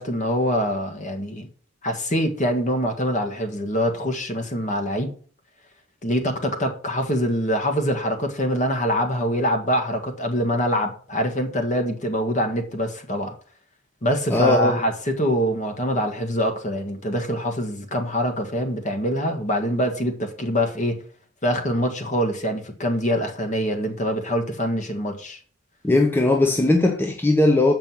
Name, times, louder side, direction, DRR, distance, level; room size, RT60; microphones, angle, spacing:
voice 1, 0.0-1.5 1.8-5.1 6.0-13.3 14.0-21.0 21.4-25.4, equal, 35° left, 1.7 m, -24 dB
voice 2, 14.3-14.8 25.8-27.7, left 2 dB, 10° left, 0.9 m, -19 dB
7.7 x 5.2 x 7.3 m
head